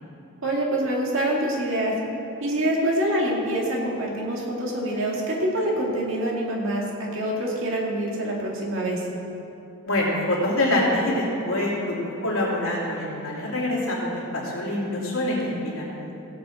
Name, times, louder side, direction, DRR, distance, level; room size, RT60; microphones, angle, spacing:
voice 1, 0.4-1.9 2.4-9.0, right 1 dB, 60° right, -3 dB, 2.2 m, -25 dB
voice 2, 9.9-12.0 12.2-16.1, left 1 dB, 75° left, -6 dB, 3.1 m, -25 dB
16.5 x 8.3 x 4.4 m, 2.8 s
head